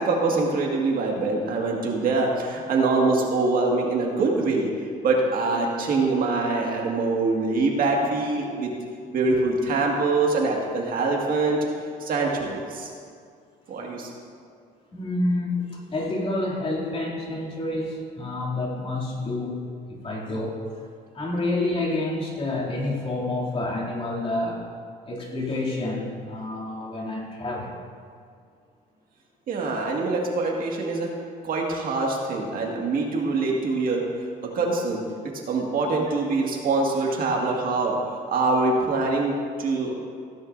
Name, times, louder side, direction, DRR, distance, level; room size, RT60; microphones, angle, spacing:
voice 1, 0.0-4.7 5.0-8.7 9.1-11.6 12.0-12.9 13.7-14.1 29.5-31.1 31.4-34.1 34.4-38.0 38.3-39.9, right 3 dB, 55° right, -1 dB, 1.9 m, -24 dB
voice 2, 14.9-20.8 21.1-24.6 25.1-27.7, left 2 dB, 35° left, -4 dB, 2.7 m, -28 dB
16.5 x 10.5 x 2.6 m, 2.2 s
cardioid pair, 110°, 17 cm